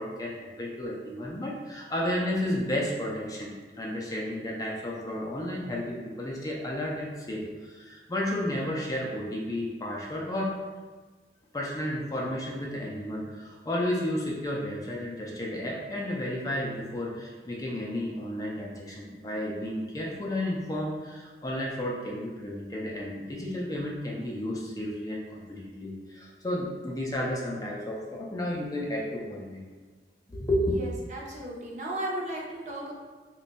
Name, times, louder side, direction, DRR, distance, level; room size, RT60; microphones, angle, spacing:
voice 1, 0.0-10.6 11.5-29.6 30.3-30.8, left 1 dB, 20° left, -3 dB, 0.4 m, -32 dB
voice 2, 30.7-32.9, right 1 dB, 40° right, -3 dB, 0.6 m, -35 dB
3.1 x 2.2 x 3.9 m, 1.4 s
head